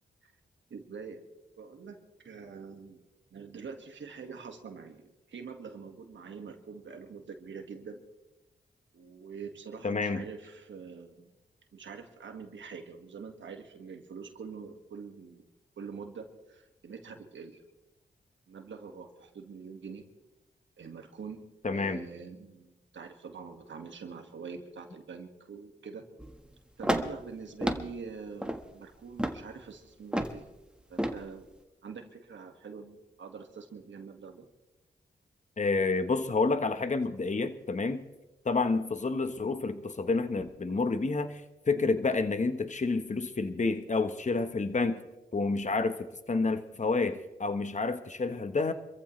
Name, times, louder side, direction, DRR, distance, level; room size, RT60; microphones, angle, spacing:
voice 1, 0.7-1.2 1.6-3.0 3.3-8.0 8.9-11.3 11.7-15.5 15.8-17.6 18.5-20.0 20.8-21.4 21.7-26.1 26.8-30.5 30.9-31.5 31.8-34.5, right 5 dB, 75° right, 5 dB, 1.9 m, -45 dB
voice 2, 9.8-10.2 21.6-22.0 35.6-38.0 38.4-41.4 41.7-45.0 45.3-48.7, left 3 dB, 40° left, 9 dB, 1.3 m, -29 dB
sound 1, 26.2-26.4 26.8-27.2 27.6-27.9 28.4-28.6 29.2-29.4 30.1-30.4 31.0-31.2, equal, 5° right, 1.6 m, -30 dB
26.5 x 14.5 x 3.3 m, 0.99 s
cardioid pair, 60°, 20 cm